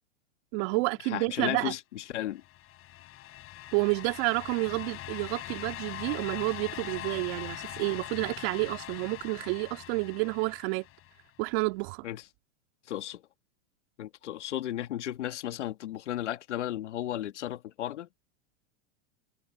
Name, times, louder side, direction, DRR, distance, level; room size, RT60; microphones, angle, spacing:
voice 1, 0.5-1.7 3.7-10.9 11.4-12.1, right 27 dB, 55° right, 3.0 m, -30 dB
voice 2, 1.1-2.4 12.0-12.2 12.9-13.2 14.0-18.1, left 12 dB, 85° left, 2.1 m, -34 dB
sound 1, 2.3-11.2, left 14 dB, 40° left, 7.3 m, -42 dB
hypercardioid pair, 120°, 34 cm